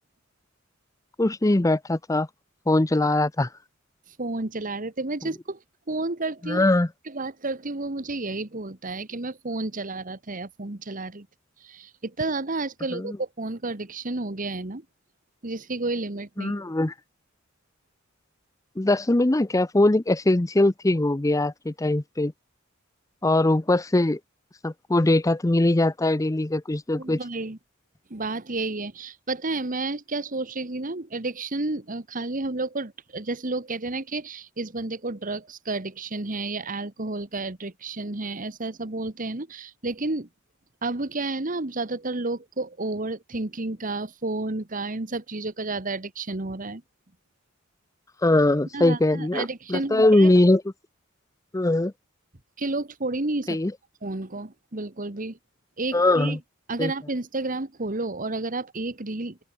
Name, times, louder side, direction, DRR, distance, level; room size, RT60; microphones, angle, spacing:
voice 1, 1.2-2.3 2.7-3.5 6.4-6.9 12.9-13.2 16.4-16.9 18.8-22.3 23.2-24.2 24.6-27.2 48.2-50.6 51.5-51.9 53.5-53.7 55.9-56.4 56.8-56.9, left 2 dB, 15° left, 0.6 m, -21 dB
voice 2, 4.2-5.6 5.9-6.7 7.1-11.3 11.6-14.8 15.4-16.5 27.0-27.6 28.1-40.3 40.8-46.8 48.7-50.3 52.6-53.6 54.0-55.4 55.8-56.4 56.7-59.4, right 2 dB, 40° right, 1.5 m, -31 dB
open air
head